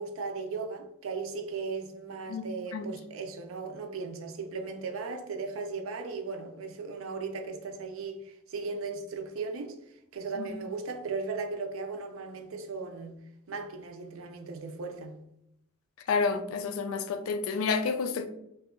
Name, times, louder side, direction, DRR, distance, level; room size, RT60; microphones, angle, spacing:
voice 1, 0.0-9.8 10.1-13.1 13.5-15.2, right 4 dB, 65° right, 0.5 m, -37 dB
voice 2, 16.1-18.3, left 5 dB, 75° left, 0.3 m, -29 dB
2.6 x 2.3 x 3.6 m
head